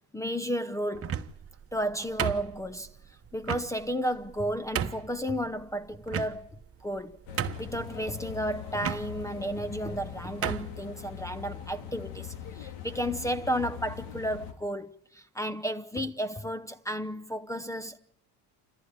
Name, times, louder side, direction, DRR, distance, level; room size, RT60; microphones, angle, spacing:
voice 1, 0.1-1.1 1.7-2.9 3.3-6.5 6.8-7.2 7.6-18.0, equal, 5° left, 0.8 m, -33 dB
sound 1, 0.9-1.5 2.2-2.9 3.5-3.7 4.3-4.4 4.7-5.1 6.1-6.6 7.0-7.1 7.4-7.8 8.8-9.0 9.9-10.0 10.4-10.7, right 8 dB, 30° right, 1.2 m, -32 dB
sound 2, 7.3-14.5, left 9 dB, 80° left, 3.1 m, -42 dB
28.5 x 14.5 x 8.8 m
cardioid pair, 115°, 44 cm